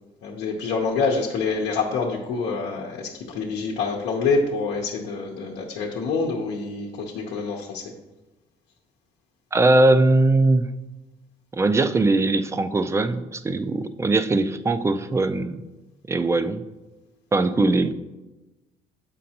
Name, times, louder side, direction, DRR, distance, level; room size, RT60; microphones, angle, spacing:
voice 1, 0.2-7.9, left 4 dB, 85° left, -2 dB, 0.8 m, -26 dB
voice 2, 9.5-10.7 11.5-15.6 16.1-16.6 17.3-17.9, right 2 dB, 15° right, 11 dB, 0.3 m, -20 dB
7.5 x 5.3 x 2.8 m, 1.1 s
cardioid pair, 110°, 17 cm